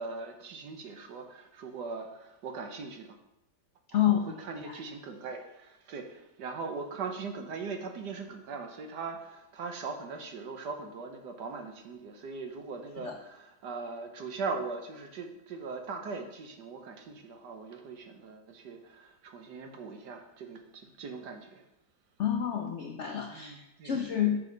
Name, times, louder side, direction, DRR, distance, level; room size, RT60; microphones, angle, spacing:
voice 1, 0.0-3.2 3.9-21.6 23.3-24.4, right 4 dB, 70° right, 5 dB, 1.5 m, -40 dB
voice 2, 22.2-24.4, left 10 dB, 65° left, 2 dB, 0.7 m, -29 dB
7.2 x 6.5 x 3.9 m, 0.87 s
omnidirectional pair, 2.0 m